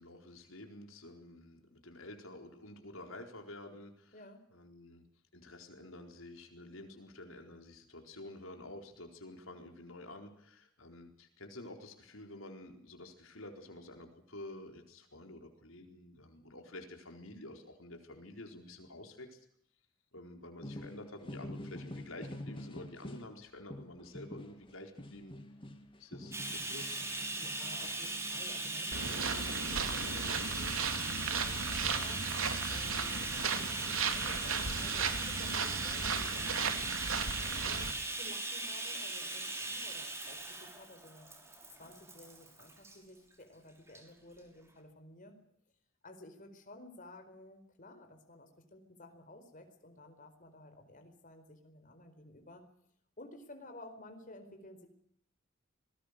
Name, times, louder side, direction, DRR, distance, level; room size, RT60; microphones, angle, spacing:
voice 1, 0.0-4.2 4.5-5.0 5.3-19.5 20.1-25.3 26.0-27.0, left 1 dB, 80° left, 4 dB, 4.3 m, -50 dB
voice 2, 4.1-4.4 27.4-36.8 37.1-41.3 41.8-45.4 46.0-52.7 53.2-54.9, left 1 dB, 40° left, 6 dB, 4.5 m, -54 dB
sound 1, 20.6-23.3 23.7-30.0, left 1 dB, 25° left, 2.9 m, -48 dB
Bathtub (filling or washing), 26.3-43.0 43.9-44.0 44.4-44.5, right 2 dB, 15° right, 5.8 m, -39 dB
sound 2, 28.9-37.9, right 5 dB, 85° right, 3.1 m, -35 dB
27.0 x 20.5 x 6.7 m, 0.68 s
head